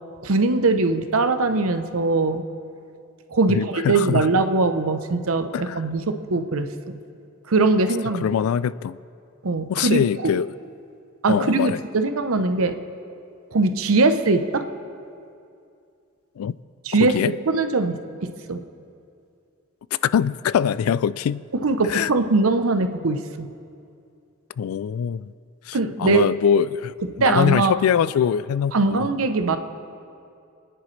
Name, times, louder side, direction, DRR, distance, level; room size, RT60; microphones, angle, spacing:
voice 1, 0.2-2.4 3.3-7.0 7.5-8.3 9.4-10.4 11.2-12.8 13.5-14.6 16.9-18.6 21.6-23.5 25.7-26.3 27.2-27.7 28.7-29.6, right 3 dB, 80° right, 9 dB, 0.8 m, -21 dB
voice 2, 3.5-4.3 5.5-5.8 8.2-9.0 9.7-10.5 11.3-11.8 16.4-16.6 17.0-17.3 20.0-21.4 21.8-22.1 24.6-25.3 25.7-29.1, left 8 dB, 80° left, 18 dB, 0.3 m, -23 dB
28.5 x 10.0 x 3.2 m, 2.5 s
head